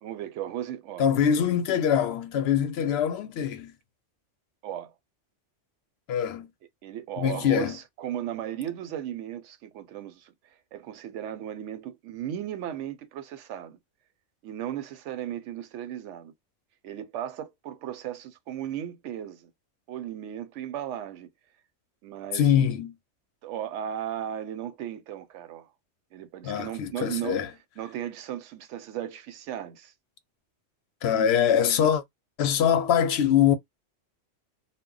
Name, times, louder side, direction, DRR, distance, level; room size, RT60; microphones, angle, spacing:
voice 1, 0.0-1.1 4.6-4.9 6.8-10.3 10.7-13.8 14.4-16.3 16.8-19.5 19.9-21.3 22.0-22.7 23.4-25.7 26.1-27.4 27.8-29.9, right 10 dB, 80° right, 0.9 m, -36 dB
voice 2, 1.0-3.7 6.1-6.5 7.2-7.8 22.3-22.9 26.4-27.5 31.0-32.0 32.4-33.5, left 9 dB, 65° left, 0.7 m, -23 dB
2.2 x 2.1 x 3.7 m
omnidirectional pair, 1.2 m